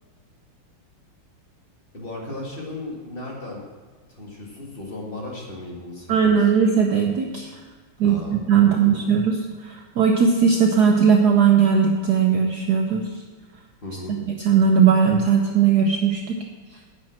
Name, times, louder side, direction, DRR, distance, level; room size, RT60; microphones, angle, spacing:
voice 1, 1.9-3.7 4.1-6.5 8.0-8.9 13.8-14.2, left 2 dB, 25° left, -2 dB, 2.0 m, -36 dB
voice 2, 6.1-7.5 8.0-13.1 14.4-16.4, right 6 dB, 65° right, 2 dB, 1.1 m, -18 dB
10.0 x 6.4 x 7.5 m, 1.4 s
omnidirectional pair, 2.4 m